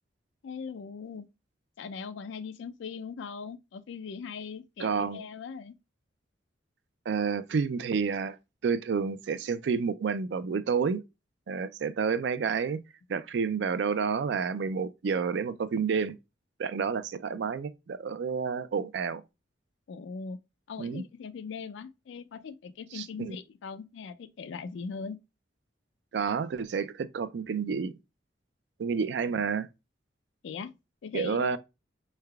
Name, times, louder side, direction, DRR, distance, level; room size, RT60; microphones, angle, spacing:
voice 1, 0.4-1.3 1.8-5.7 19.9-20.4 20.7-25.2 30.4-30.7 31.0-31.6, left 5 dB, 75° left, 0.4 m, -40 dB
voice 2, 4.8-5.2 7.1-8.4 8.6-11.0 11.5-12.8 13.1-16.1 16.6-19.2 20.8-21.0 22.9-23.4 26.1-27.9 28.8-29.7 31.1-31.6, right 5 dB, 70° right, 0.4 m, -29 dB
4.7 x 3.3 x 2.2 m
head